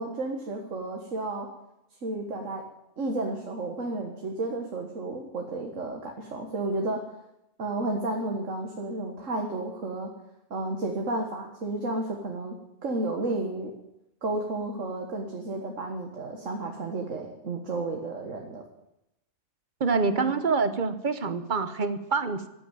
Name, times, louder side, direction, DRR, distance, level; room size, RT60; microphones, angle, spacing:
voice 1, 0.0-1.5 2.0-2.6 3.0-7.0 7.6-10.1 10.5-12.6 12.8-13.7 14.2-18.6 20.1-20.3, right 2 dB, 65° right, 2 dB, 1.9 m, -32 dB
voice 2, 19.8-22.5, right 4 dB, 40° right, 11 dB, 1.0 m, -26 dB
14.0 x 9.4 x 9.0 m, 0.87 s
omnidirectional pair, 1.4 m